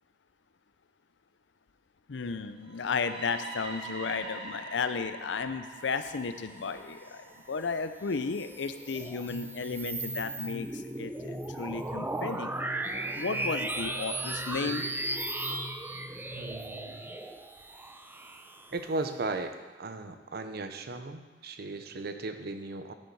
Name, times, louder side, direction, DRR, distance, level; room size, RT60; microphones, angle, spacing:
voice 1, 2.1-12.5 13.2-14.8, left 5 dB, 75° left, 10 dB, 0.6 m, -34 dB
sound 1, 2.6-10.5, right 1 dB, 30° right, 2.5 m, -46 dB
sound 2, 8.1-19.1, right 2 dB, 10° right, 0.5 m, -36 dB
sound 3, 9.3-16.8, equal, 25° left, 2.2 m, -46 dB
voice 2, 16.3-17.1 18.7-22.9, right 3 dB, 60° right, 8 dB, 0.7 m, -36 dB
9.9 x 6.9 x 4.7 m, 1.2 s
head